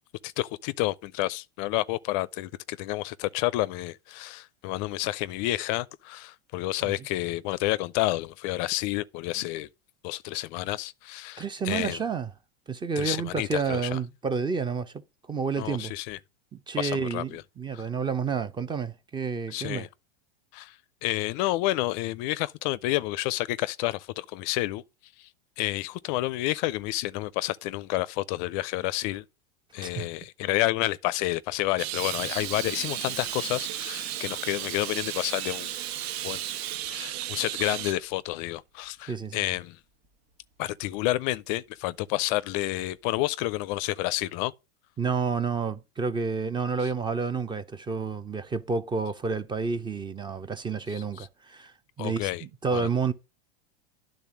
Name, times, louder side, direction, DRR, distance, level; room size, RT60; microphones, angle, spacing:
voice 1, 0.2-9.7 10.0-12.0 13.0-14.0 15.6-16.2 16.8-17.4 17.7-17.8 19.5-19.9 20.5-20.8 21.0-24.8 25.2-25.3 25.6-29.2 29.7-35.7 36.2-36.4 36.9-39.8 40.6-44.5 50.9-51.3 52.0-52.4 52.7-52.9, left 17 dB, 45° left, 0.4 m, -30 dB
voice 2, 11.4-12.3 12.7-15.0 15.3-15.9 16.5-19.9 29.8-30.1 39.1-39.4 45.0-53.1, right 5 dB, 15° right, 0.6 m, -30 dB
Sink (filling or washing) / Liquid, 31.5-31.6 31.9-38.0 38.4-38.5 40.0-40.1 41.1-41.2 42.0-42.2 43.0-43.1, right 8 dB, 45° right, 1.4 m, -42 dB
sound 1, 31.8-37.9, right 14 dB, 75° right, 0.6 m, -35 dB
10.0 x 3.8 x 7.1 m
supercardioid pair, 130°, 32 cm